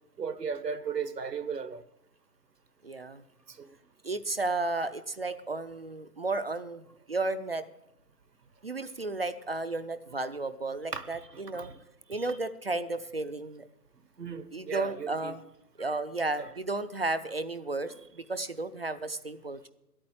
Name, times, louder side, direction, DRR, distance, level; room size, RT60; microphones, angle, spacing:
voice 1, 0.2-1.8 10.9-11.7 12.2-12.3 14.2-15.3 16.4-16.5, right 6 dB, 80° right, 1.3 m, -36 dB
voice 2, 2.8-3.2 4.0-7.6 8.6-11.7 12.1-13.7 14.5-15.4 15.8-19.7, right 2 dB, 40° right, 0.5 m, -33 dB
11.0 x 8.7 x 8.7 m
figure-of-eight pair, 150°, 47 cm